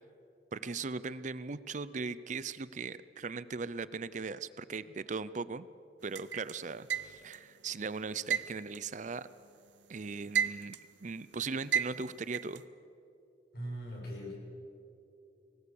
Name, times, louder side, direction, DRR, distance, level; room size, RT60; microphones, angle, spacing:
voice 1, 0.5-5.7 6.0-9.3 9.9-12.6, right 4 dB, 40° right, 16 dB, 0.6 m, -39 dB
sound 1, 6.2-7.5 8.3-9.7 10.0-11.0 11.7-12.6, right 7 dB, 75° right, 0.9 m, -33 dB
voice 2, 13.5-14.3, equal, 55° left, -3 dB, 7.1 m, -40 dB
24.5 x 19.5 x 7.1 m, 2.8 s
head